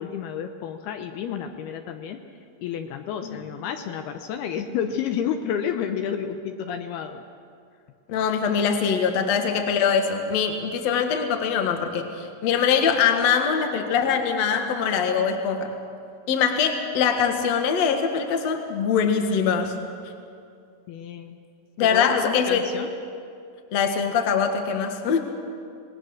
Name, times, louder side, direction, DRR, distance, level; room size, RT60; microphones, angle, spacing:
voice 1, 0.0-2.2 2.6-7.2 20.9-21.4 21.8-22.9, left 8 dB, 75° left, 6 dB, 2.7 m, -30 dB
voice 2, 8.1-15.7 16.3-19.7 21.8-22.6 23.7-25.2, left 6 dB, 55° left, 5 dB, 2.1 m, -23 dB
26.0 x 19.5 x 6.4 m, 2.4 s
omnidirectional pair, 4.9 m